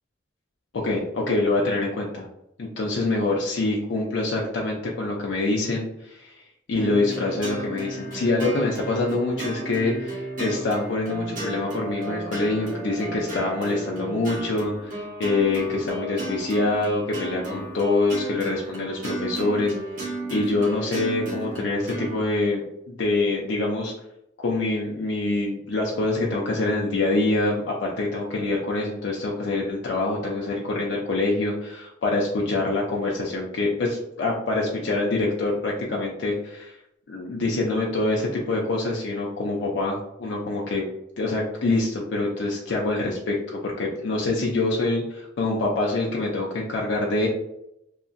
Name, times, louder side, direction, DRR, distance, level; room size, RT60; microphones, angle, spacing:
voice 1, 0.7-2.2 2.6-6.4 6.7-19.7 20.3-23.9 24.4-36.8 37.1-40.9 41.2-47.3, left 2 dB, 75° left, -2 dB, 0.5 m, -25 dB
sound 1, 6.8-22.2, right 2 dB, 45° right, 0.9 m, -34 dB
2.8 x 2.5 x 2.4 m, 0.81 s
head